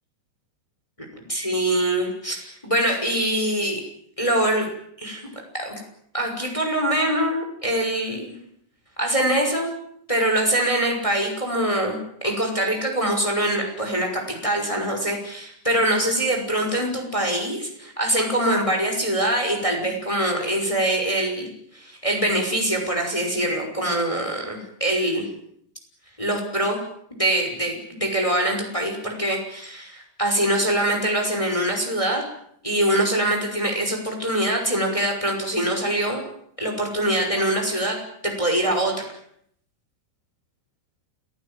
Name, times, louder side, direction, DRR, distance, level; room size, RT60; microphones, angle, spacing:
voice 1, 1.3-3.8 4.2-4.7 5.0-5.2 5.5-5.8 6.1-8.3 9.0-9.7 10.1-21.5 21.7-25.3 26.2-26.8 27.1-32.2 32.6-36.2 36.6-39.1, right 1 dB, 5° left, 3 dB, 5.6 m, -24 dB
29.5 x 18.5 x 9.2 m, 0.70 s
omnidirectional pair, 4.9 m